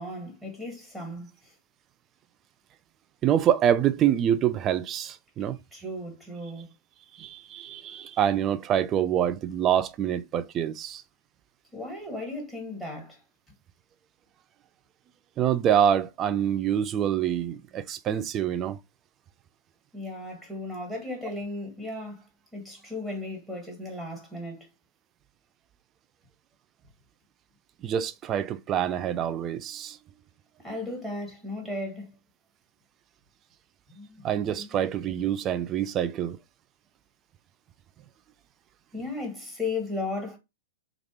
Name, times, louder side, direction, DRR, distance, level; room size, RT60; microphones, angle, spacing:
voice 1, 0.0-1.5 5.7-6.7 11.7-13.2 19.9-24.7 30.6-32.1 33.9-34.2 34.5-34.8 38.9-40.4, left 2 dB, ahead, 2.0 m, -36 dB
voice 2, 3.2-5.6 7.2-11.0 15.4-18.8 27.8-30.0 34.2-36.4, right 10 dB, 30° right, 0.4 m, -26 dB
3.2 x 2.5 x 3.1 m
hypercardioid pair, 100°, 0 cm